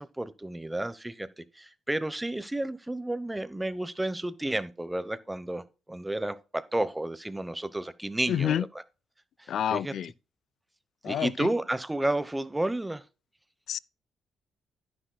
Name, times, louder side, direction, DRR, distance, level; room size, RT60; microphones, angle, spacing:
voice 1, 0.0-5.6 5.9-8.7 9.4-9.9 11.0-13.0, right 1 dB, 10° right, 0.8 m, -31 dB
voice 2, 8.3-8.7 9.5-10.1 11.0-11.5 13.7-13.8, left 10 dB, 65° left, 0.3 m, -28 dB
11.0 x 10.0 x 2.2 m
cardioid pair, 90°, 0 cm